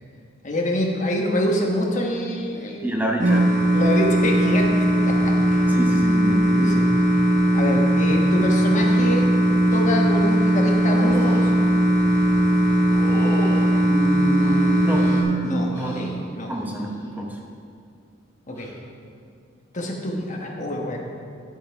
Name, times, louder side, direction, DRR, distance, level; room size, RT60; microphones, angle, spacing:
voice 1, 0.4-3.1 3.7-5.7 6.4-7.0 7.5-9.3 9.7-11.5 15.4-16.5 18.5-18.7 19.7-21.0, left 1 dB, 35° left, 0 dB, 1.2 m, -26 dB
voice 2, 2.8-3.6 5.7-6.4 13.8-15.1 15.7-15.9 16.5-17.4, right 1 dB, 10° right, 0 dB, 0.9 m, -27 dB
sound 1, 3.2-15.2, right 1 dB, 35° right, 1.5 m, -19 dB
sound 2, 10.8-11.5 12.9-13.7 14.4-15.2 15.7-16.2 16.5-17.0 18.5-18.7, right 1 dB, 15° left, 1.6 m, -34 dB
9.2 x 8.0 x 4.6 m, 2.4 s
head